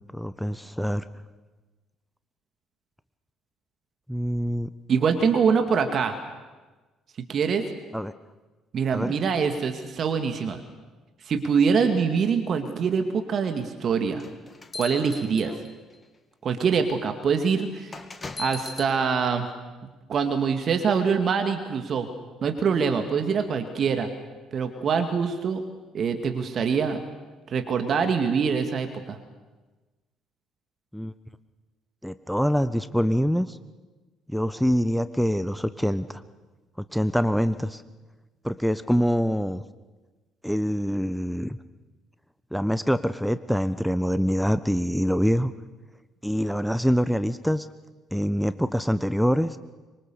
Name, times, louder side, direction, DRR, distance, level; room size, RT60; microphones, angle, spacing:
voice 1, 0.1-1.0 4.1-4.7 7.9-8.1 8.9-9.1 30.9-31.1 32.0-33.6 34.3-36.2 36.8-37.8 38.4-39.6 40.4-41.6 42.5-45.5 46.2-47.7 48.1-49.6, equal, ahead, 12 dB, 1.1 m, -25 dB
voice 2, 4.9-6.2 7.3-7.6 8.7-10.6 11.2-14.2 14.7-15.5 16.4-18.0 18.4-19.5 19.8-22.1 22.4-24.1 24.5-25.6 25.9-27.0 27.5-29.2, right 6 dB, 45° right, 7 dB, 2.2 m, -24 dB
sound 1, 14.2-15.9 16.7-16.9 17.9-18.9, left 3 dB, 25° left, 2.4 m, -37 dB
25.0 x 23.5 x 6.9 m, 1.2 s
figure-of-eight pair, 50°, 0 cm